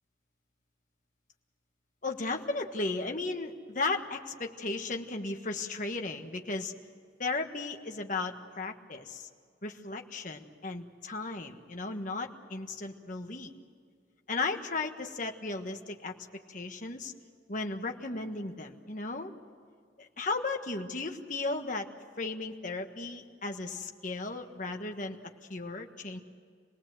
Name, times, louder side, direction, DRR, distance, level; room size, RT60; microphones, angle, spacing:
voice 1, 2.0-6.7 7.2-9.3 9.6-13.5 14.3-16.1 16.5-17.1 17.5-19.3 20.0-21.9 22.2-25.2 25.5-26.2, left 3 dB, 40° left, 4 dB, 1.5 m, -35 dB
27.5 x 19.0 x 7.8 m, 2.1 s
head